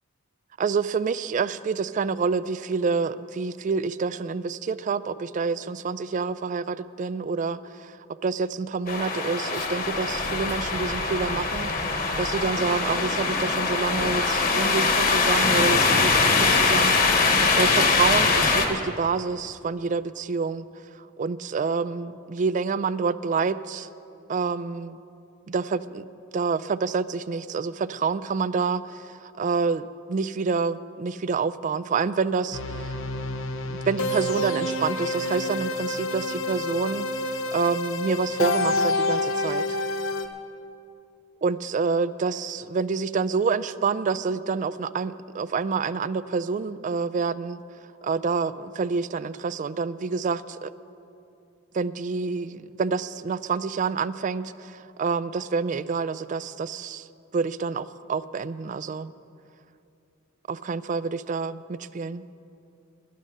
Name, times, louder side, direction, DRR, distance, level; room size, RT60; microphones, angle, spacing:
voice 1, 0.6-20.7 21.2-23.9 24.3-25.0 25.5-26.0 26.3-33.0 33.6-39.7 41.4-47.6 48.0-50.7 51.7-57.1 57.3-59.1 60.5-62.2, right 5 dB, 40° right, 16 dB, 0.3 m, -28 dB
sound 1, 8.9-18.7, left 4 dB, 45° left, 1.3 m, -22 dB
sound 2, 32.5-40.3, left 2 dB, 90° left, 0.9 m, -28 dB
12.0 x 11.0 x 6.6 m, 2.6 s
head